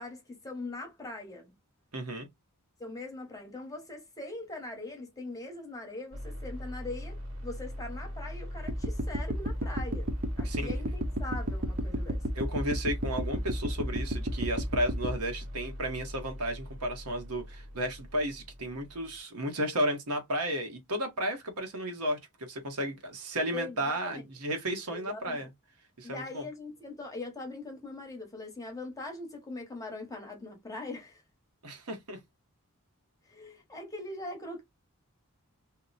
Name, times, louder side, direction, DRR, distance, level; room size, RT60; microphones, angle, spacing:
voice 1, 0.0-1.6 2.8-10.1 10.4-12.2 23.5-24.2 24.9-25.5 26.0-31.2 33.2-34.6, left 2 dB, 15° left, 1.0 m, -41 dB
voice 2, 1.9-2.3 10.4-10.7 12.3-25.5 26.0-26.4 31.6-32.2, equal, 90° right, 1.0 m, -33 dB
sound 1, 6.1-19.2, equal, 65° right, 0.9 m, -41 dB
sound 2, 8.6-15.2, right 1 dB, 40° right, 0.6 m, -32 dB
2.8 x 2.1 x 3.9 m
head